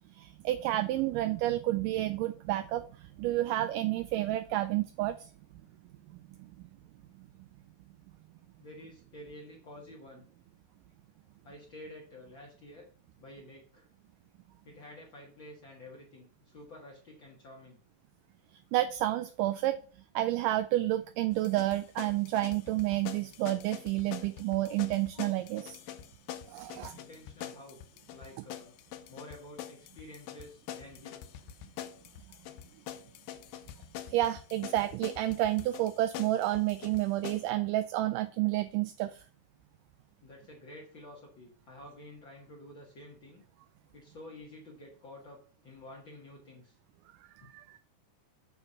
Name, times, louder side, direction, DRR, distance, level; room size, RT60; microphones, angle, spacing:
voice 1, 0.1-5.3 6.1-6.2 18.7-19.8 20.2-25.8 26.5-27.0 34.1-39.2 47.4-47.8, right 15 dB, 80° right, 10 dB, 2.0 m, -30 dB
voice 2, 8.6-10.3 11.4-12.9 13.2-13.9 14.6-17.8 26.9-27.8 28.1-28.7 29.1-31.3 40.2-43.4 43.9-46.8 47.4-47.5, left 1 dB, 45° left, -2 dB, 1.9 m, -50 dB
sound 1, 21.3-37.5, left 11 dB, 90° left, 2.5 m, -45 dB
8.4 x 4.6 x 5.6 m, 0.41 s
omnidirectional pair, 4.0 m